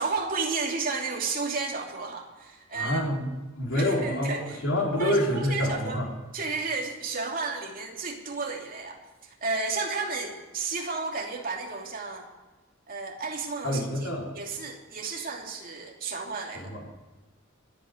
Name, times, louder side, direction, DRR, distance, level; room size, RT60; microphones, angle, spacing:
voice 1, 0.0-3.0 3.7-4.6 5.0-6.0 6.3-12.3 12.9-14.1 14.3-16.7, right 4 dB, 45° right, 0 dB, 2.9 m, -32 dB
voice 2, 2.7-6.1 13.6-14.3 16.5-16.8, left 1 dB, 80° left, -2 dB, 4.4 m, -27 dB
24.5 x 9.3 x 5.2 m, 1.2 s
head